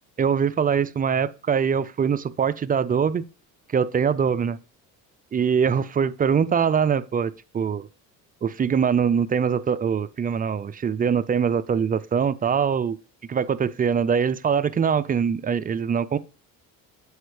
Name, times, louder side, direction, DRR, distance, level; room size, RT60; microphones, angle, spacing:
voice 1, 0.2-3.3 3.7-4.6 5.3-7.9 8.4-13.0 13.3-16.2, right 7 dB, 25° right, 0.3 m, -23 dB
7.9 x 5.0 x 3.2 m
cardioid pair, 90°, 35 cm